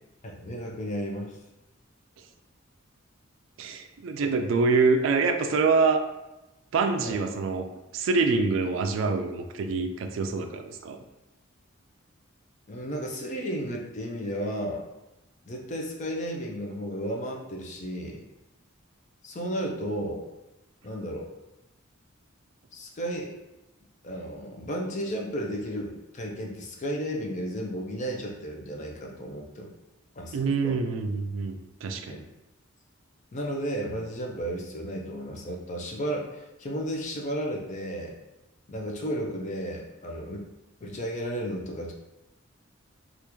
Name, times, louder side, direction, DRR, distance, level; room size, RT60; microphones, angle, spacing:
voice 1, 0.2-1.4 4.2-4.3 7.0-7.2 12.7-14.8 15.5-18.2 19.2-20.2 20.8-21.3 22.7-23.3 24.0-29.7 30.2-30.8 32.1-32.2 33.3-38.2 38.7-40.5 40.8-41.9, equal, 35° left, 0 dB, 0.5 m, -33 dB
voice 2, 3.6-6.0 6.7-7.7 7.9-11.0 30.3-32.2, right 4 dB, 65° right, 6 dB, 0.3 m, -25 dB
3.5 x 2.4 x 3.0 m, 0.98 s
head